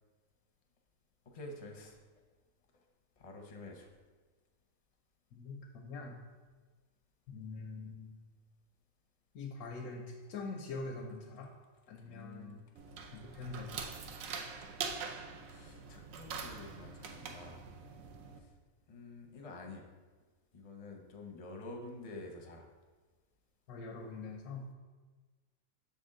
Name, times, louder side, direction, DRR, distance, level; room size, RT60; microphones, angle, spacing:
voice 1, 1.3-2.0 3.2-3.9 12.0-12.6 15.5-17.7 18.4-18.5 18.9-19.8 20.5-22.7, left 2 dB, 35° left, 2 dB, 0.6 m, -48 dB
voice 2, 5.3-6.2 7.3-8.2 9.3-11.5 11.9-12.7 13.1-13.9 23.7-24.7, left 3 dB, 85° left, 0 dB, 1.1 m, -44 dB
sound 1, 12.8-18.4, right 5 dB, 70° right, 1.0 m, -44 dB
6.8 x 4.3 x 3.7 m, 1.3 s
omnidirectional pair, 1.5 m